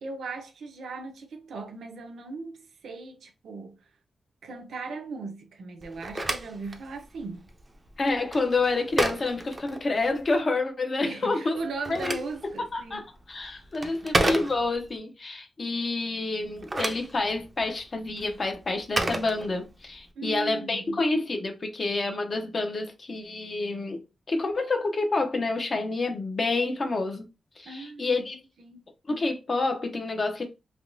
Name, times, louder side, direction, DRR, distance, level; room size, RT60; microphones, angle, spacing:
voice 1, 0.0-3.8 4.4-7.4 11.1-13.0 14.0-14.2 20.2-21.0 27.6-28.1 28.6-28.8, right 3 dB, 85° right, 0.7 m, -38 dB
Telephone, 5.8-10.3 11.6-15.0 16.4-20.0, right 2 dB, 20° right, 0.5 m, -32 dB
voice 2, 8.0-11.6 11.9-12.2 12.4-24.0 24.3-27.3 27.6-28.4 29.1-30.4, left 3 dB, 35° left, 0.7 m, -28 dB
3.4 x 2.9 x 2.6 m
wide cardioid pair, 145°, 0 cm